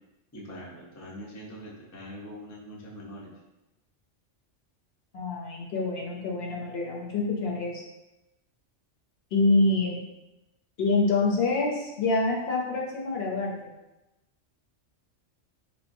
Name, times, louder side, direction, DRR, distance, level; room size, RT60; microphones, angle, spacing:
voice 1, 0.3-3.3, equal, 25° left, -4 dB, 0.4 m, -43 dB
voice 2, 5.1-7.8 9.3-10.0 10.8-13.7, left 3 dB, 60° left, -2 dB, 0.8 m, -26 dB
3.5 x 3.4 x 2.5 m, 0.98 s
omnidirectional pair, 1.3 m